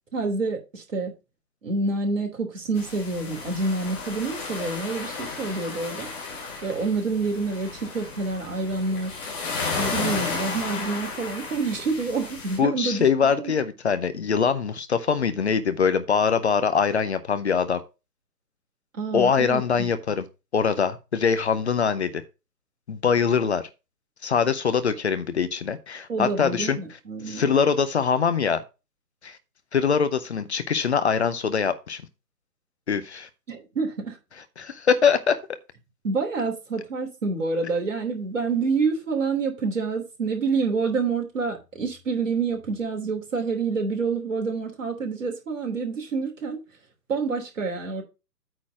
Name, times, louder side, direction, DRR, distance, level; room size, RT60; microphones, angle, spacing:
voice 1, 0.1-1.1 1.6-6.1 6.6-9.2 9.8-13.0 13.4-13.5 18.9-19.9 26.1-27.5 33.5-34.2 36.0-46.6 47.1-48.0, right 4 dB, 50° right, 3.2 m, -27 dB
sound 1, 2.7-12.6, left 4 dB, 5° left, 0.7 m, -33 dB
voice 2, 12.6-17.8 19.1-20.2 20.5-22.2 22.9-23.6 24.2-26.8 27.3-28.6 29.2-29.4 29.7-32.0 32.9-33.3 34.6-35.4, left 6 dB, 45° left, 0.8 m, -23 dB
8.9 x 4.2 x 6.1 m
figure-of-eight pair, 140°, 48 cm